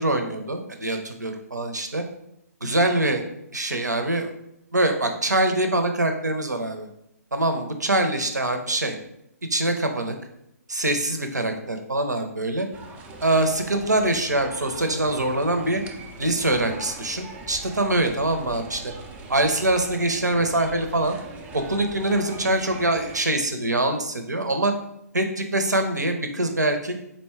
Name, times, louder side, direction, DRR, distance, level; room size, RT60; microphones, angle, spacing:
voice 1, 0.0-2.0 2.6-3.2 3.5-4.3 4.7-6.9 7.3-9.0 9.5-10.1 10.7-12.7 13.2-15.8 16.2-18.9 19.3-21.2 21.5-24.7 25.1-27.0, right 1 dB, 90° right, 6 dB, 0.7 m, -24 dB
sound 1, 12.7-23.2, right 3 dB, 15° right, 0.3 m, -41 dB
4.1 x 2.2 x 4.5 m, 0.80 s
figure-of-eight pair, 135°, 9 cm